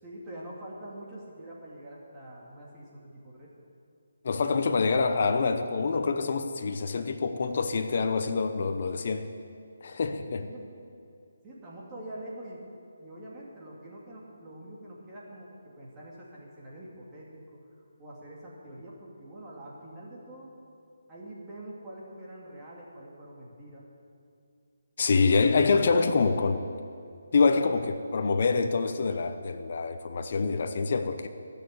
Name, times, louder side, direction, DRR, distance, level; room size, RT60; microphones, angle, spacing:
voice 1, 0.0-3.5 10.4-10.7 11.4-12.7 13.0-17.6 18.0-20.5 21.1-23.8, right 1 dB, 15° right, -6 dB, 2.5 m, -45 dB
voice 2, 4.2-9.3 9.8-10.5 25.0-26.7 27.3-31.3, left 4 dB, 50° left, 7 dB, 0.8 m, -26 dB
16.0 x 6.8 x 9.4 m, 2.5 s
hypercardioid pair, 165°, 0 cm